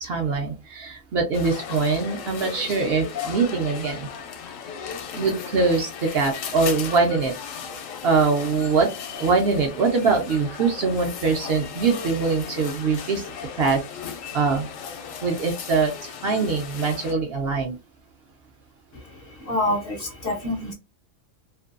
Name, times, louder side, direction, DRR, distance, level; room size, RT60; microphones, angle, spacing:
voice 1, 0.0-4.1 5.1-7.3 8.0-8.9 9.1-13.3 13.6-13.8 14.3-14.7 15.2-17.8, right 4 dB, 60° right, 3 dB, 0.7 m, -23 dB
sound 1, 1.3-17.1, left 7 dB, 80° left, 0.9 m, -36 dB
voice 2, 18.9-20.7, left 1 dB, 55° left, 3 dB, 0.7 m, -27 dB
2.5 x 2.2 x 2.4 m, 0.28 s
omnidirectional pair, 1.3 m